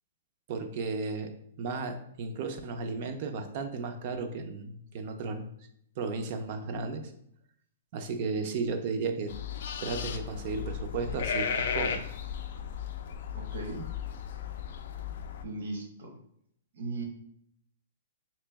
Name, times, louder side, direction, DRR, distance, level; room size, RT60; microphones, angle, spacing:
voice 1, 0.5-1.3 1.6-5.5 6.0-7.1 7.9-9.3 9.8-12.0, right 4 dB, 40° right, 7 dB, 0.5 m, -34 dB
sound 1, 9.3-15.4, left 7 dB, 60° left, 0.4 m, -35 dB
voice 2, 13.3-13.9 15.4-16.2 16.7-17.0, right 2 dB, 75° right, 1 dB, 1.1 m, -37 dB
3.3 x 3.0 x 3.4 m, 0.70 s
hypercardioid pair, 165°, 0 cm